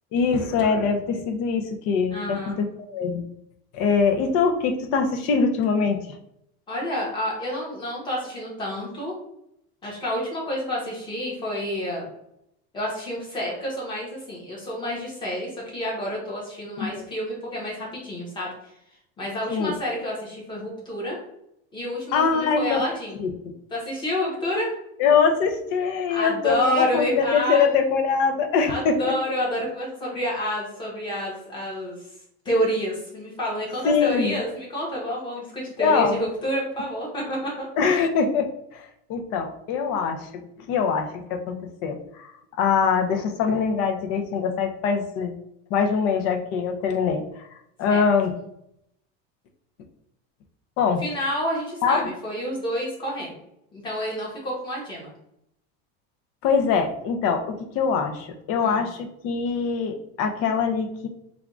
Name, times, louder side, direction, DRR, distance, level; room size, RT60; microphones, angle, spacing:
voice 1, 0.1-3.3 3.7-6.0 16.8-17.0 19.5-19.7 22.1-22.8 23.2-23.3 25.0-29.1 33.8-34.4 35.8-36.2 37.8-40.4 40.7-41.6 41.8-42.3 42.6-45.3 45.7-47.2 47.8-48.3 50.8-51.0 51.8-52.1 56.4-61.1, left 5 dB, 50° left, 5 dB, 0.6 m, -23 dB
voice 2, 2.1-2.6 6.7-9.1 9.8-12.1 12.7-18.5 19.2-21.2 21.7-23.2 23.7-24.7 26.1-27.8 28.7-32.0 32.4-37.7 47.9-48.0 51.0-53.3 53.7-55.1 58.6-58.8, equal, 15° left, -4 dB, 1.1 m, -29 dB
3.5 x 2.3 x 3.6 m, 0.77 s
cardioid pair, 165°, 31 cm